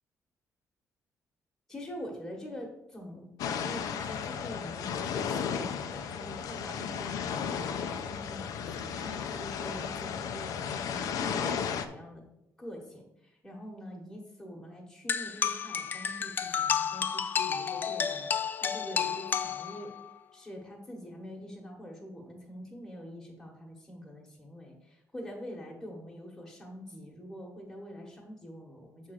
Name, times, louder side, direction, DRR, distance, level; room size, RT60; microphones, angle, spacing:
voice 1, 1.7-12.2 12.6-18.3 18.6-19.9 20.3-29.1, equal, 5° left, -2 dB, 1.2 m, -45 dB
sound 1, 3.4-11.9, left 7 dB, 85° left, 0.6 m, -34 dB
sound 2, 15.1-20.1, left 7 dB, 35° left, 0.4 m, -31 dB
7.2 x 3.7 x 6.4 m, 0.84 s
cardioid pair, 175°, 6 cm